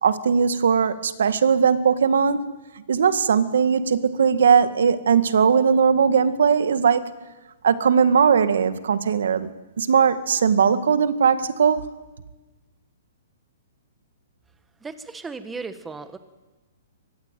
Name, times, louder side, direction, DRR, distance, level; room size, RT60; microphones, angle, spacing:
voice 1, 0.0-2.5 2.9-7.1 7.6-9.5 9.8-11.9, right 6 dB, 80° right, 12 dB, 2.0 m, -19 dB
voice 2, 14.8-16.2, right 4 dB, 10° right, 11 dB, 1.5 m, -35 dB
24.5 x 21.0 x 9.3 m, 1.2 s
hypercardioid pair, 160°, 0 cm